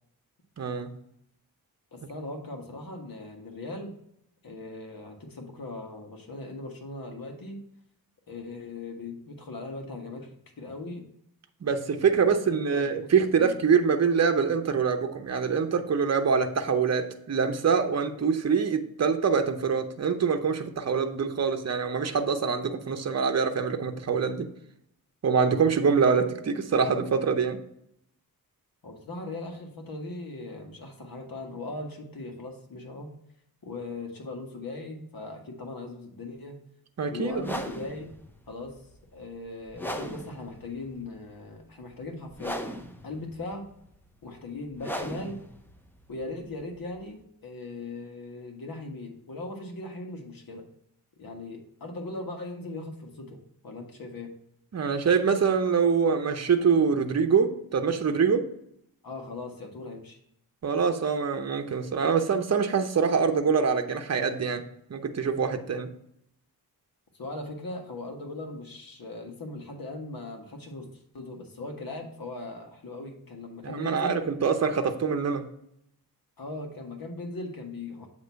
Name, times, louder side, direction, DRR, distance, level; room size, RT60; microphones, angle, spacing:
voice 1, 0.6-0.9 11.6-24.5 25.2-27.6 37.0-37.6 54.7-58.5 60.6-64.6 64.9-65.9 73.6-75.5, right 6 dB, 45° right, 6 dB, 0.8 m, -25 dB
voice 2, 1.9-3.9 4.4-7.6 8.3-11.0 12.2-12.4 12.7-13.6 28.8-33.1 33.6-36.6 37.1-38.1 38.5-38.8 39.1-42.6 43.0-43.7 44.2-45.4 46.1-50.6 51.2-54.3 59.0-60.2 67.1-74.2 76.4-78.1, left 2 dB, 65° left, 2 dB, 1.5 m, -39 dB
sound 1, 37.3-47.2, equal, 5° left, 0.7 m, -39 dB
7.7 x 3.0 x 5.6 m, 0.75 s
wide cardioid pair, 80°, 37 cm